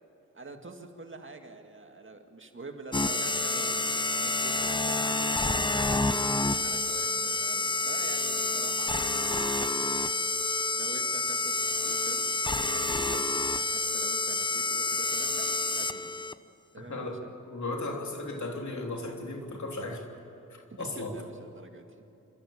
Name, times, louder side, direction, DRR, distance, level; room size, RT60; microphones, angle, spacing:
voice 1, 0.3-3.9 4.2-10.0 10.7-12.4 12.6-15.4 15.8-16.3 16.7-17.2 20.7-21.9, right 3 dB, 40° right, 4 dB, 2.1 m, -46 dB
sound 1, 2.9-16.3, left 2 dB, 15° left, 0.8 m, -28 dB
voice 2, 16.8-20.0 20.5-21.2, left 2 dB, 65° left, 2 dB, 3.3 m, -36 dB
27.0 x 13.0 x 8.7 m, 2.8 s
cardioid pair, 55°, 31 cm